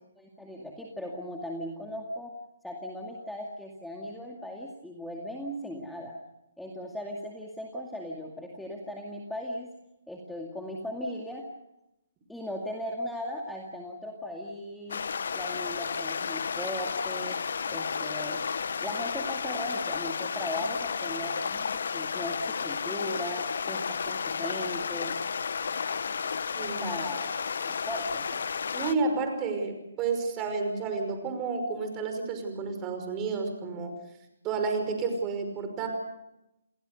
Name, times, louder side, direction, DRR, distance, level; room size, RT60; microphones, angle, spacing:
voice 1, 0.2-2.3 2.6-6.1 6.6-9.7 10.1-11.5 12.3-15.0 15.3-18.4 18.8-25.2 26.8-27.3 27.6-28.4, left 1 dB, ahead, -1 dB, 2.3 m, -38 dB
sound 1, 14.9-28.9, left 6 dB, 65° left, 0.9 m, -32 dB
voice 2, 26.6-26.9 28.7-33.9 34.4-35.9, right 4 dB, 20° right, 5 dB, 5.5 m, -30 dB
28.5 x 19.5 x 6.8 m, 0.90 s
hypercardioid pair, 150°, 0 cm